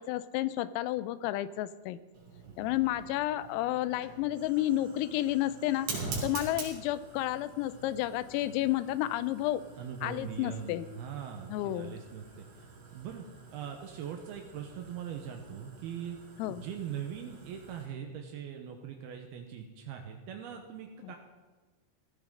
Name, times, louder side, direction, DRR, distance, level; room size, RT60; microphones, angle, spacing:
voice 1, 0.0-2.0 2.6-9.7 10.0-11.0 11.5-12.0 16.4-16.6 21.0-21.2, left 14 dB, 85° left, 15 dB, 3.3 m, -31 dB
Fire, 2.1-17.9, right 4 dB, 60° right, 5.0 m, -46 dB
voice 2, 2.5-2.8 6.0-6.4 9.8-13.3 13.5-16.2 16.5-21.1, right 8 dB, 85° right, 3 dB, 2.2 m, -41 dB
17.5 x 14.5 x 3.8 m, 1.3 s
omnidirectional pair, 6.0 m